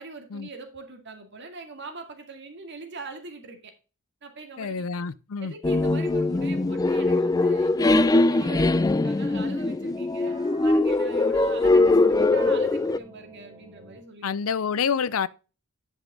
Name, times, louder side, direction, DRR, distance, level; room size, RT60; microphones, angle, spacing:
voice 1, 0.0-3.7 4.2-4.9 5.4-14.3, right 3 dB, 55° right, 2.1 m, -42 dB
voice 2, 4.6-5.5 14.2-15.3, left 6 dB, 75° left, 0.5 m, -27 dB
sound 1, 5.6-13.0, left 2 dB, 15° left, 0.4 m, -21 dB
sound 2, 6.5-6.9 8.4-8.6 10.3-10.6 11.2-14.0, right 2 dB, 20° right, 1.6 m, -49 dB
10.0 x 5.6 x 3.8 m
head